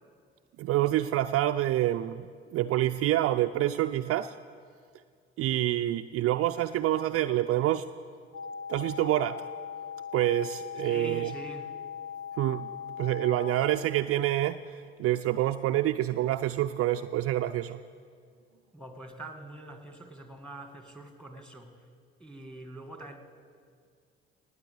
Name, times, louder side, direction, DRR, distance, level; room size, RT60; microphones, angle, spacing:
voice 1, 0.6-4.3 5.4-7.9 8.7-9.4 10.1-11.3 12.4-12.7 13.0-17.8, right 13 dB, 50° right, 9 dB, 0.4 m, -27 dB
sound 1, 8.3-13.8, left 8 dB, 45° left, 0.8 m, -40 dB
voice 2, 10.8-11.7 18.7-21.8 22.2-23.2, right 2 dB, 5° left, 6 dB, 2.1 m, -44 dB
19.0 x 8.0 x 8.0 m, 2.1 s
figure-of-eight pair, 50°, 31 cm